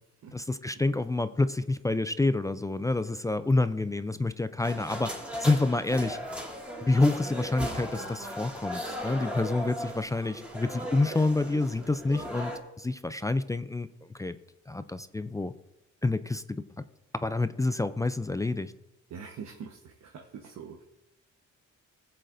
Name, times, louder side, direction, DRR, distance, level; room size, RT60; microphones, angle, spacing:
voice 1, 0.3-5.1 5.4-6.2 6.8-12.5 12.8-14.4 14.7-15.5 16.0-16.4 17.2-18.7, left 2 dB, 10° left, 12 dB, 0.3 m, -28 dB
sound 1, 4.6-12.6, equal, 5° right, 2.0 m, -37 dB
voice 2, 19.1-20.8, right 6 dB, 65° right, 2 dB, 1.1 m, -44 dB
20.0 x 7.6 x 2.6 m, 0.93 s
cardioid pair, 90°, 30 cm